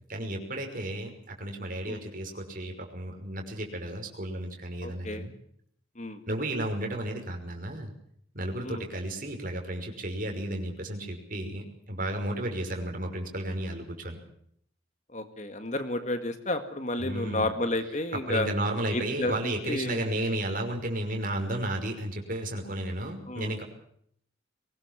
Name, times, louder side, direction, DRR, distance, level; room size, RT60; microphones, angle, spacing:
voice 1, 0.1-5.3 6.3-7.9 8.3-14.2 17.0-17.6 18.1-23.6, right 1 dB, 40° right, 3 dB, 5.7 m, -33 dB
voice 2, 4.8-5.3 6.0-6.2 8.6-8.8 15.1-18.5 18.9-20.0 23.3-23.5, left 2 dB, 35° left, 9 dB, 1.9 m, -31 dB
23.5 x 20.0 x 7.4 m, 0.67 s
head